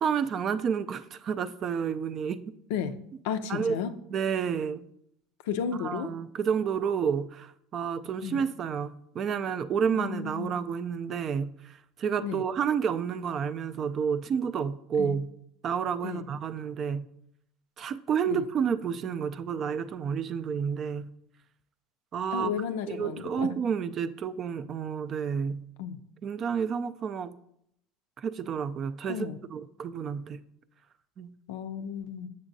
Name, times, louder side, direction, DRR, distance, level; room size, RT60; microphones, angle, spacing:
voice 1, 0.0-2.4 3.5-3.8 4.1-4.8 5.8-15.3 15.6-17.1 17.8-21.1 22.1-22.5 22.9-25.6 26.2-27.4 28.2-30.4 31.2-31.3, right 7 dB, 45° right, 0.3 m, -30 dB
voice 2, 3.2-3.9 5.5-6.1 8.2-8.4 9.9-10.5 12.2-12.4 15.0-15.1 16.0-16.3 18.3-18.4 22.3-23.5 25.8-26.0 29.1-29.4 31.5-32.3, left 7 dB, 75° left, 0.4 m, -33 dB
7.0 x 6.4 x 2.6 m
hypercardioid pair, 85°, 0 cm